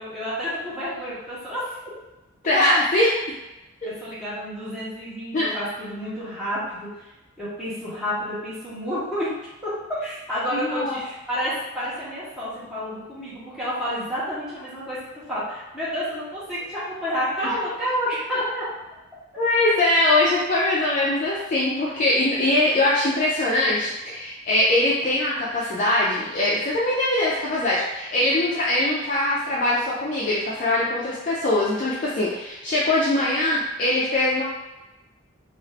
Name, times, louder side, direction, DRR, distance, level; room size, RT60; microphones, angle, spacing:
voice 1, 0.0-1.7 3.8-7.1 7.4-9.3 10.0-15.0 15.3-18.6, equal, 5° right, -11 dB, 1.0 m, -29 dB
voice 2, 2.4-3.1 5.3-5.5 10.5-11.0 17.4-17.5 19.4-34.4, left 1 dB, 35° left, -6 dB, 0.3 m, -22 dB
2.5 x 2.4 x 3.2 m, 1.0 s
head